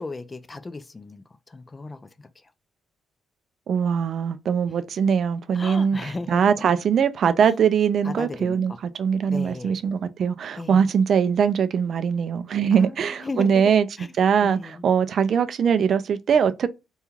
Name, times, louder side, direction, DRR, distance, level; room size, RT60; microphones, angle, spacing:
voice 1, 0.0-2.5 5.5-6.5 8.0-8.8 9.3-9.8 10.6-10.8 12.7-13.6 14.0-14.1 14.4-14.8, left 3 dB, 25° left, 0.3 m, -36 dB
voice 2, 3.7-13.9 14.2-16.7, right 7 dB, 60° right, 0.3 m, -22 dB
3.0 x 2.3 x 2.3 m
cardioid pair, 90°, 0 cm